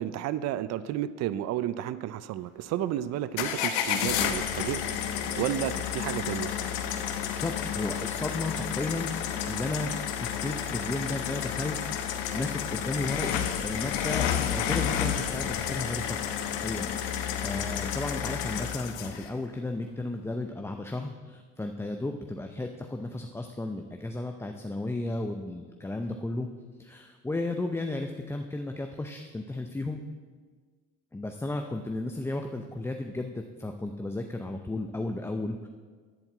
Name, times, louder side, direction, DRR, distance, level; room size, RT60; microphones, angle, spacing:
voice 1, 0.0-4.8 5.3-6.5, right 12 dB, 55° right, 15 dB, 0.5 m, -32 dB
sound 1, 3.4-19.3, left 9 dB, 85° left, 1.0 m, -31 dB
voice 2, 7.3-13.3 13.6-26.5 26.8-30.0 31.1-35.7, left 2 dB, 10° left, 4 dB, 0.6 m, -34 dB
11.0 x 4.6 x 8.0 m, 1.5 s
supercardioid pair, 100°, 31 cm